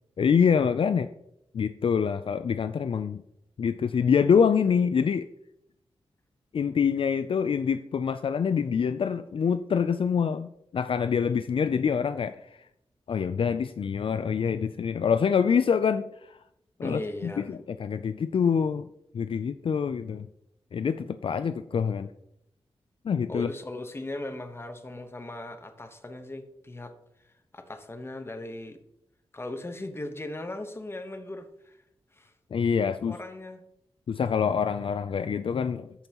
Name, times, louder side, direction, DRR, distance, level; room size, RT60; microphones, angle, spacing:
voice 1, 0.2-1.1 1.5-3.2 3.6-5.3 6.5-12.5 13.1-16.4 16.8-18.9 19.1-20.3 20.7-22.1 23.0-23.5 32.5-33.1 34.1-35.9, left 6 dB, 60° left, 10 dB, 0.4 m, -25 dB
voice 2, 16.8-17.5 23.3-26.9 27.5-28.8 29.3-31.8 32.1-32.3 33.0-33.6, left 2 dB, 25° left, 7 dB, 1.0 m, -38 dB
14.0 x 5.4 x 2.9 m, 0.78 s
wide cardioid pair, 100°, 10 cm